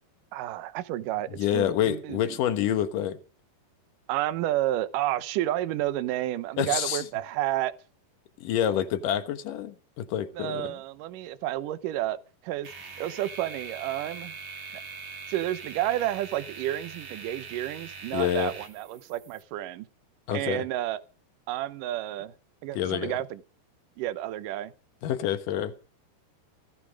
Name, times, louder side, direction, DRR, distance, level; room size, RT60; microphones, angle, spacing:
voice 1, 0.3-2.4 4.1-7.7 10.4-12.2 12.4-12.7 13.0-14.4 14.7-14.8 15.3-19.9 20.3-21.0 21.5-22.3 22.6-23.4 24.0-24.7, right 14 dB, 70° right, 2.1 m, -30 dB
voice 2, 1.4-3.2 6.6-7.0 8.4-10.8 18.1-18.5 20.3-20.7 22.7-23.2 25.0-25.7, left 10 dB, 65° left, 2.4 m, -27 dB
sound 1, 12.6-19.4, right 5 dB, 45° right, 3.6 m, -42 dB
18.5 x 15.0 x 5.1 m
omnidirectional pair, 4.9 m